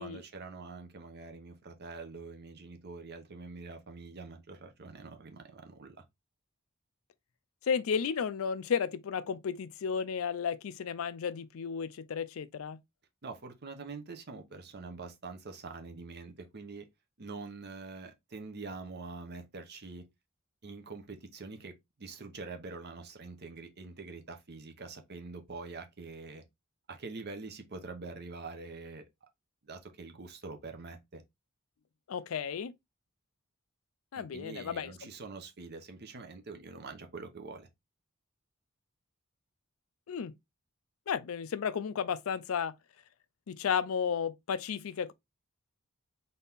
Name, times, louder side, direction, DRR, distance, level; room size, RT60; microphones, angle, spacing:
voice 1, 0.0-6.0 13.2-16.8 17.2-20.0 20.6-21.7 22.0-26.4 26.9-29.0 29.6-31.2 34.1-37.7, right 3 dB, 50° right, 0.9 m, -45 dB
voice 2, 7.6-12.8 32.1-32.7 34.1-34.9 40.1-40.3 41.1-42.7 43.5-45.1, left 7 dB, 70° left, 0.4 m, -33 dB
4.0 x 2.8 x 3.5 m
head